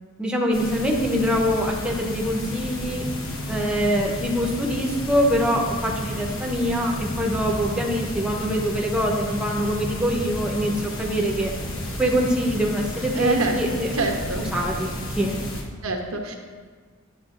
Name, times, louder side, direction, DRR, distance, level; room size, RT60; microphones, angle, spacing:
voice 1, 0.2-3.1 3.5-11.5 12.0-13.9 14.4-15.4, equal, 5° right, -1 dB, 0.7 m, -24 dB
sound 1, 0.5-15.6, left 1 dB, 65° left, 1.1 m, -32 dB
voice 2, 13.2-14.4 15.8-16.4, right 2 dB, 80° right, 2 dB, 0.9 m, -26 dB
10.5 x 7.1 x 2.4 m, 1.5 s
head